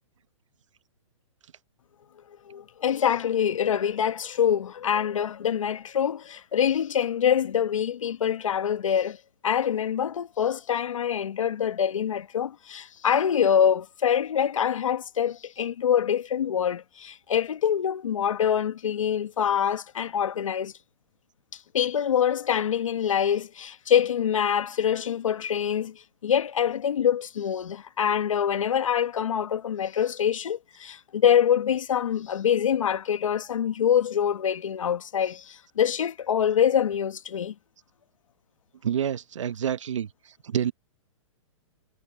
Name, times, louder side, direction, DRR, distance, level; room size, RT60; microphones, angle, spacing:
voice 1, 2.5-9.2 9.4-20.7 21.7-25.9 26.2-37.5, left 9 dB, 75° left, 1.3 m, -25 dB
voice 2, 38.8-40.1 40.4-40.7, right 9 dB, 70° right, 1.0 m, -27 dB
hypercardioid pair, 180°, 17 cm